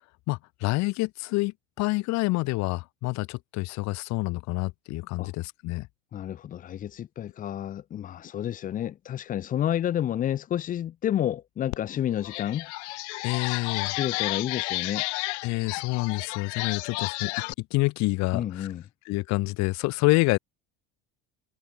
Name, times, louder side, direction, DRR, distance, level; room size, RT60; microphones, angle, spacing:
voice 1, 0.3-5.9 13.2-13.9 15.4-17.3 17.6-18.7 19.1-20.4, left 22 dB, 50° left, 1.0 m, -27 dB
voice 2, 6.1-12.7 14.0-15.0 18.3-18.8, left 11 dB, 25° left, 0.6 m, -30 dB
sound 1, 11.7-11.8 12.2-17.5, left 26 dB, 90° left, 1.9 m, -32 dB
cardioid pair, 150°, 34 cm